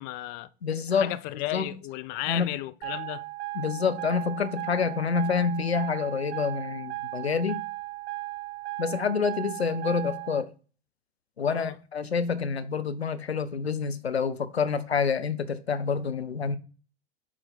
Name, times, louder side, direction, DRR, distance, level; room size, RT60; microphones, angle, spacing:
voice 1, 0.0-0.5 0.9-3.2 11.4-11.8, left 17 dB, 35° left, 0.4 m, -34 dB
voice 2, 0.6-1.2 1.5-1.7 2.3-2.6 3.5-7.6 8.8-10.5 11.4-16.6, left 5 dB, 90° left, 0.5 m, -27 dB
sound 1, 2.8-10.4, right 19 dB, 55° right, 1.3 m, -36 dB
8.2 x 3.3 x 3.7 m
figure-of-eight pair, 90°, 31 cm